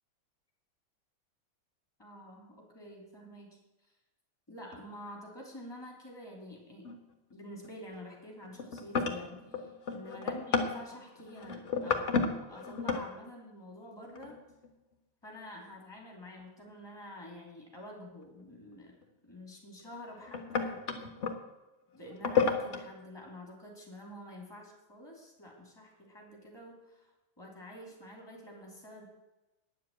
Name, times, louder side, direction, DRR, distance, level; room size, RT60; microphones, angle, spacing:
voice 1, 2.0-3.6 4.5-6.9 7.3-14.4 15.2-18.9 19.2-20.8 21.9-27.1 27.4-29.0, left 1 dB, 10° left, 0 dB, 3.0 m, -48 dB
sound 1, 4.7-4.8 6.9-7.3 7.6-7.9 8.4-13.1 14.2-14.7 16.7-16.8 19.0-19.1 19.9-21.4 22.1-22.8, left 5 dB, 45° left, 1.2 m, -33 dB
9.9 x 7.6 x 8.5 m, 1.0 s
omnidirectional pair, 2.3 m